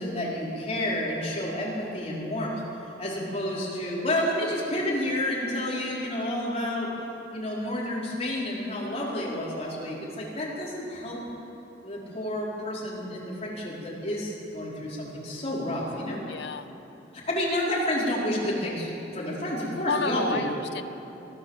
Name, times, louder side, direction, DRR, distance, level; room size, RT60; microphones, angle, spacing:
voice 1, 0.0-2.6 3.0-6.9 7.3-11.2 11.8-16.2 17.3-20.5, left 1 dB, 35° left, -5 dB, 5.1 m, -30 dB
voice 2, 16.3-16.7 19.9-20.8, left 5 dB, 65° left, 9 dB, 1.0 m, -31 dB
23.0 x 15.5 x 7.6 m, 3.0 s
head